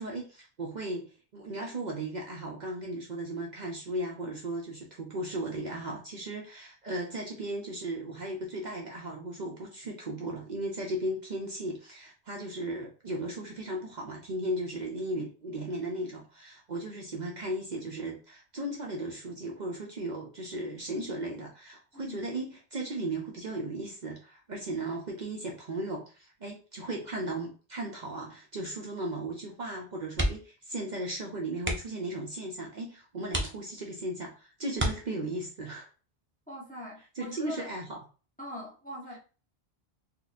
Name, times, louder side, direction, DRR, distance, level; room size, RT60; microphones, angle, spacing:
voice 1, 0.0-35.9 37.2-38.0, right 1 dB, 50° right, 0.7 m, -36 dB
sound 1, 30.1-30.6 30.9-31.1 31.6-32.1 32.7-32.8 33.3-34.0 34.7-35.5 37.1-37.4 37.8-37.9, right 1 dB, 15° right, 0.4 m, -32 dB
voice 2, 36.5-37.7 38.4-39.2, left 1 dB, 10° left, 0.8 m, -42 dB
2.9 x 2.4 x 4.0 m
omnidirectional pair, 1.1 m